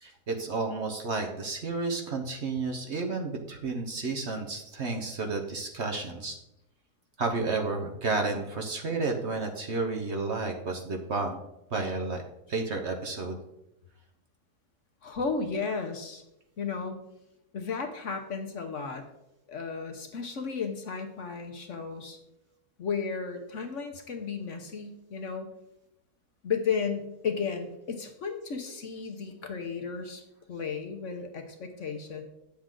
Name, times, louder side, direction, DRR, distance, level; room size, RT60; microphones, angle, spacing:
voice 1, 0.0-6.3 7.2-11.4 11.7-12.2 12.5-13.4, right 3 dB, 50° right, 3 dB, 1.1 m, -31 dB
voice 2, 15.0-16.2 16.6-17.0 17.5-19.0 19.5-22.2 22.8-25.5 26.4-30.2 30.5-32.2, left 5 dB, 55° left, 4 dB, 1.1 m, -34 dB
9.3 x 7.3 x 3.8 m, 0.85 s
omnidirectional pair, 1.7 m